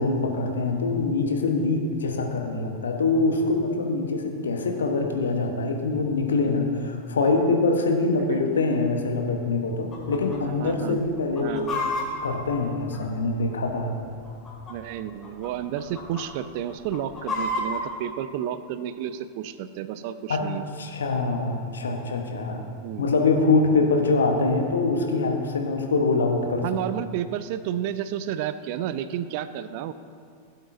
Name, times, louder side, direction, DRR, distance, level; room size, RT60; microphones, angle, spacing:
voice 1, 0.0-11.7 12.0-14.0 20.3-20.4 20.8-22.6 23.0-26.6, left 3 dB, 70° left, 3 dB, 1.1 m, -24 dB
Chicken rooster, 9.9-10.4 10.6-10.7 11.2-13.4 14.2-14.9 15.2-15.5 15.8-16.2 16.7-17.8, left 2 dB, 25° left, 2.3 m, -30 dB
voice 2, 10.4-11.0 11.4-11.7 14.7-20.6 22.8-23.1 26.6-29.9, right 10 dB, 45° right, 13 dB, 0.4 m, -31 dB
16.0 x 7.9 x 2.7 m, 2.3 s
figure-of-eight pair, 90°, 0 cm